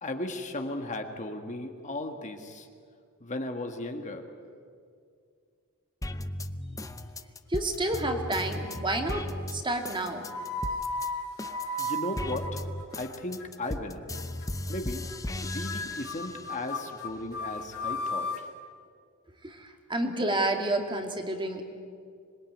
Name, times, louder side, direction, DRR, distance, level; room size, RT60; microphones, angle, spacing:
voice 1, 0.0-2.7 3.2-4.3 11.8-12.6 13.0-14.0 14.7-15.1 15.4-18.5, left 2 dB, 35° left, 4 dB, 1.8 m, -36 dB
sound 1, 6.0-11.1 11.4-16.6 17.1-18.0, left 1 dB, 15° left, 0.8 m, -37 dB
voice 2, 7.5-9.2 9.5-10.3 19.4-21.6, right 1 dB, 20° right, 4 dB, 2.4 m, -29 dB
sound 2, 7.6-8.2 8.5-9.0 9.8-13.1 13.4-13.7 14.1-14.5 14.7-14.8 15.1-15.2 15.4-18.4, left 1 dB, 65° left, 4.6 m, -36 dB
26.5 x 21.5 x 9.4 m, 2.3 s
head